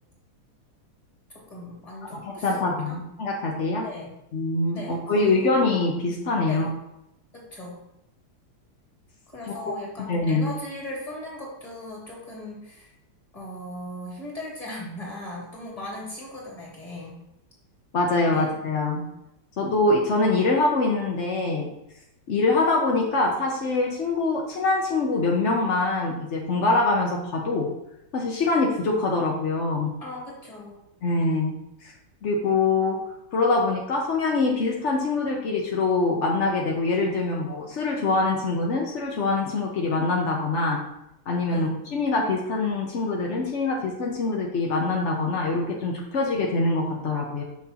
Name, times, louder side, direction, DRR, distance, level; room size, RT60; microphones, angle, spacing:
voice 1, 1.3-3.0 3.8-4.1 4.7-5.4 6.5-6.7 7.3-7.8 9.3-12.9 13.3-17.2 18.3-18.5 30.0-30.8 41.5-41.7, left 1 dB, 15° left, -4 dB, 2.1 m, -38 dB
voice 2, 2.1-3.9 4.3-6.7 9.5-9.7 10.1-10.5 17.9-19.0 19.6-21.7 22.3-27.7 28.1-29.9 31.0-31.5 31.8-31.9 32.2-33.0 33.3-40.8 41.3-47.4, left 3 dB, 70° left, -1 dB, 0.6 m, -24 dB
6.1 x 5.8 x 2.8 m, 0.85 s
omnidirectional pair, 2.3 m